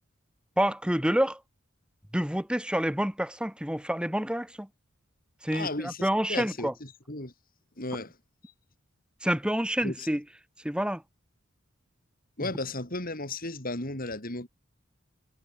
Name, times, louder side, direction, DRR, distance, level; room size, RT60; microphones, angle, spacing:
voice 1, 0.6-1.4 2.1-4.7 5.4-6.7 9.2-10.2 10.6-11.0, equal, 5° right, 3.2 m, -28 dB
voice 2, 5.5-7.3 7.8-8.2 8.4-8.5 9.8-10.1 12.4-14.5, left 2 dB, 45° left, 6.9 m, -35 dB
head